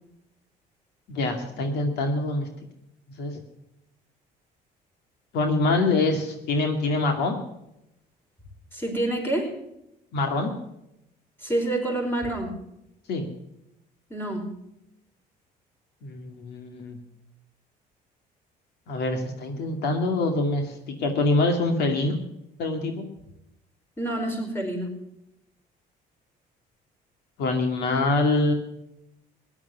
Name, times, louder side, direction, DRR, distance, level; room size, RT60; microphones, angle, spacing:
voice 1, 1.1-2.5 3.2-3.3 5.3-7.4 10.1-10.5 13.1-13.3 16.0-17.0 18.9-22.2 22.6-23.0 27.4-28.5, left 2 dB, 75° left, 4 dB, 2.3 m, -25 dB
voice 2, 8.7-9.5 11.4-12.5 14.1-14.5 24.0-24.9, right 1 dB, 15° left, 1 dB, 4.9 m, -27 dB
17.0 x 11.0 x 5.9 m, 0.84 s
cardioid pair, 110°, 17 cm